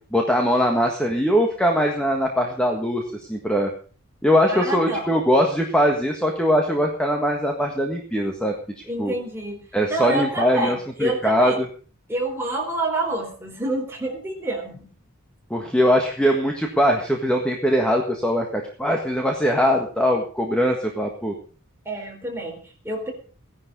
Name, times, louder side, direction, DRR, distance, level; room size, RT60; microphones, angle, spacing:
voice 1, 0.1-3.7 4.2-8.5 9.0-9.1 9.7-11.5 15.5-21.3, equal, 5° left, 1 dB, 1.6 m, -21 dB
voice 2, 4.4-5.1 8.9-9.6 9.9-11.6 12.1-14.9 21.9-23.1, right 2 dB, 10° right, 0 dB, 3.9 m, -27 dB
16.5 x 11.0 x 5.3 m, 0.40 s
head